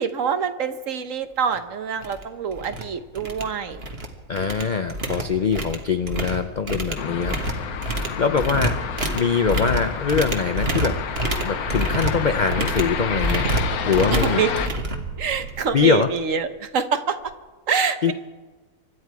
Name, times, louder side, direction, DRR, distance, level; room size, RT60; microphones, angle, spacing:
voice 1, 0.0-3.8 14.1-14.5 15.2-17.2 17.7-18.1, right 6 dB, 60° right, 9 dB, 1.3 m, -25 dB
sound 1, 1.5-1.6 2.0-2.2 2.5-2.8 3.2-4.1 4.4-15.6, right 1 dB, 40° right, 1.7 m, -28 dB
voice 2, 4.3-7.4 8.2-11.0 11.4-13.5 13.9-14.4 15.7-16.1 18.0-18.1, left 6 dB, 55° left, 8 dB, 0.5 m, -23 dB
sound 2, 7.0-14.7, left 7 dB, 80° left, 1.4 m, -30 dB
sound 3, 11.2-16.7 17.2-17.3, right 6 dB, 90° right, 1.3 m, -36 dB
25.5 x 11.5 x 4.8 m, 1.3 s
omnidirectional pair, 1.6 m